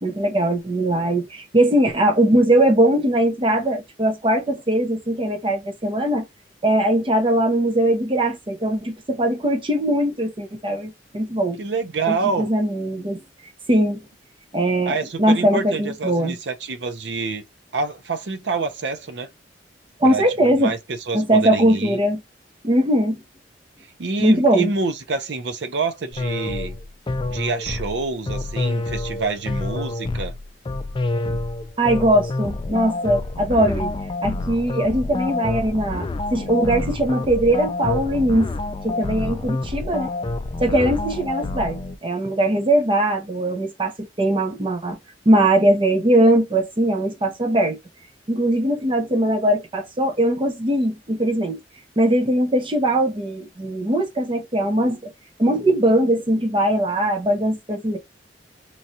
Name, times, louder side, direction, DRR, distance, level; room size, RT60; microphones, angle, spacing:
voice 1, 0.0-6.2 6.6-11.6 12.1-13.2 13.7-14.0 14.5-16.4 20.0-20.7 21.1-22.2 22.6-23.2 24.2-24.7 31.8-33.9 34.2-38.5 38.8-40.1 40.6-45.0 45.3-47.8 48.3-51.6 52.0-55.1 55.4-58.0, right 1 dB, 30° right, 0.7 m, -20 dB
voice 2, 11.6-12.5 14.9-17.4 17.7-19.3 20.0-20.8 21.1-22.0 24.0-26.8 27.3-30.3, right 4 dB, 70° right, 0.6 m, -27 dB
sound 1, 26.1-42.0, left 2 dB, 30° left, 0.3 m, -27 dB
3.1 x 2.3 x 2.7 m
head